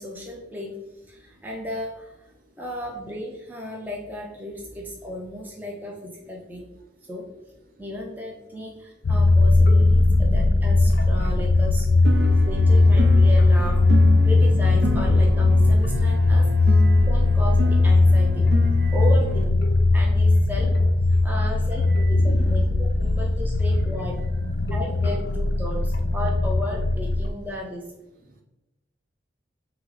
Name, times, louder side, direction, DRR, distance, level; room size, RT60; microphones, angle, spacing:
voice 1, 0.0-6.7 7.1-7.3 7.8-11.9 12.4-13.9 14.2-16.8 17.1-18.5 18.9-19.5 19.9-20.7 21.2-24.2 24.7-27.9, left 1 dB, 10° right, -1 dB, 0.4 m, -35 dB
sound 1, 9.0-27.3, left 2 dB, 60° left, 0.4 m, -19 dB
sound 2, 12.0-19.4, right 1 dB, 70° right, 0.5 m, -32 dB
voice 2, 16.7-17.1 18.6-19.1 21.1-21.3 21.9-22.2 24.4-24.7 28.3-28.4, right 11 dB, 50° right, 2 dB, 0.8 m, -49 dB
5.7 x 2.0 x 3.9 m, 0.94 s
head